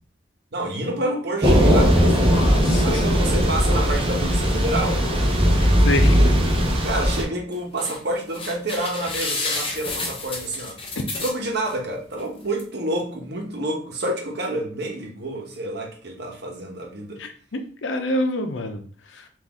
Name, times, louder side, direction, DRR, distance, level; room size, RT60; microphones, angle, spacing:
voice 1, 0.5-2.5 2.8-5.0 5.3-5.5 6.8-10.8 11.2-17.2, right 1 dB, 65° right, 1 dB, 1.0 m, -28 dB
Thunder / Rain, 1.4-7.2, equal, 30° right, 0.9 m, -18 dB
voice 2, 2.0-3.3 5.8-6.2 17.2-19.3, left 1 dB, 90° left, 6 dB, 0.7 m, -28 dB
sound 1, 7.5-8.0 8.3-11.7 12.2-12.3 12.6-12.7, left 3 dB, 30° left, 0.8 m, -30 dB
4.1 x 2.6 x 3.6 m, 0.43 s
head